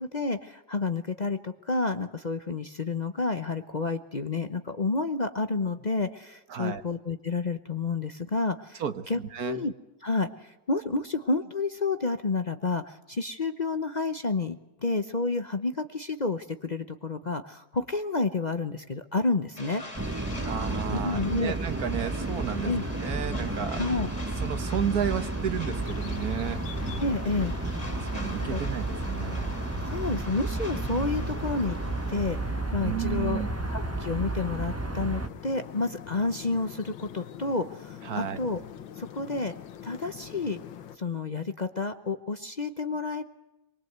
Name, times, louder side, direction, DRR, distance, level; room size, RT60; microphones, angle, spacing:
voice 1, 0.0-9.7 10.0-19.8 20.9-21.5 22.6-22.8 23.8-24.1 27.0-27.5 28.5-28.6 29.9-31.8 32.1-32.4 32.7-38.6 39.0-39.5 39.8-40.6 41.0-43.2, left 3 dB, 50° left, 8 dB, 0.5 m, -30 dB
voice 2, 6.5-6.8 8.8-9.7 20.5-22.7 23.0-23.8 24.4-26.6 27.9-29.5 32.8-33.5 38.0-38.4, right 8 dB, 55° right, 11 dB, 1.4 m, -32 dB
sound 1, 19.6-32.6, left 1 dB, 20° left, 3.7 m, -44 dB
sound 2, 19.9-35.3, right 2 dB, 15° right, 0.5 m, -32 dB
sound 3, 25.8-41.0, left 10 dB, 70° left, 1.7 m, -44 dB
24.0 x 21.5 x 8.0 m, 1.0 s
omnidirectional pair, 2.2 m